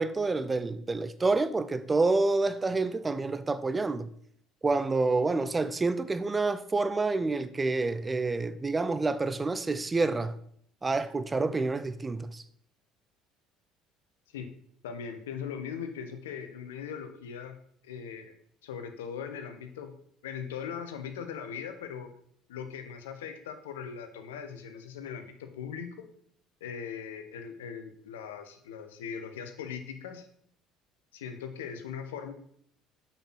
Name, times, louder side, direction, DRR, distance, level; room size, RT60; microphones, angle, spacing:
voice 1, 0.0-4.1 4.6-10.4 10.8-12.4, right 3 dB, 25° right, 0.6 m, -28 dB
voice 2, 14.8-17.6 17.8-18.3 18.6-19.9 20.2-22.1 22.5-26.0 26.6-30.3 31.1-32.3, left 7 dB, 75° left, 1.0 m, -40 dB
7.1 x 5.9 x 5.7 m
hypercardioid pair, 60°, 0 cm